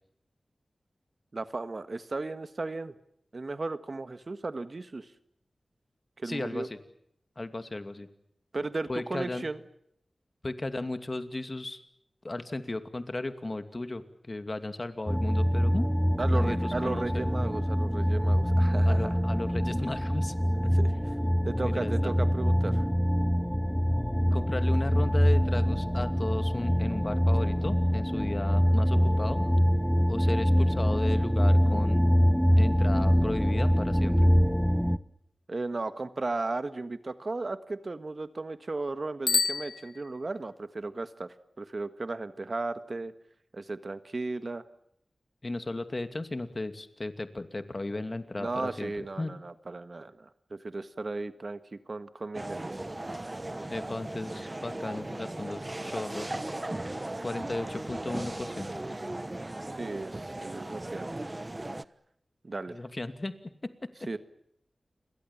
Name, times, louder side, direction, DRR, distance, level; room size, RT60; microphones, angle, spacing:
voice 1, 1.3-2.9 3.3-5.1 6.2-6.7 8.5-9.6 16.2-19.1 20.6-21.1 21.4-22.8 35.5-43.1 43.5-44.6 48.4-52.8 59.8-61.2 62.4-62.8 64.1-64.2, right 3 dB, 55° right, 11 dB, 1.5 m, -35 dB
voice 2, 6.2-6.8 7.4-8.1 8.9-9.4 10.4-11.8 12.2-15.9 16.3-17.2 18.8-20.3 21.6-22.1 24.3-29.4 30.1-32.1 32.6-34.3 45.4-49.3 53.7-56.3 57.2-58.8 62.7-63.3 63.6-63.9, left 2 dB, 40° left, 9 dB, 2.6 m, -35 dB
sound 1, 15.1-35.0, equal, ahead, 1.0 m, -24 dB
Bicycle bell, 39.2-40.5, left 4 dB, 75° left, 1.0 m, -30 dB
sound 2, 52.3-61.8, right 1 dB, 30° right, 1.1 m, -37 dB
29.5 x 23.0 x 7.3 m, 0.72 s
wide cardioid pair, 55°, 0 cm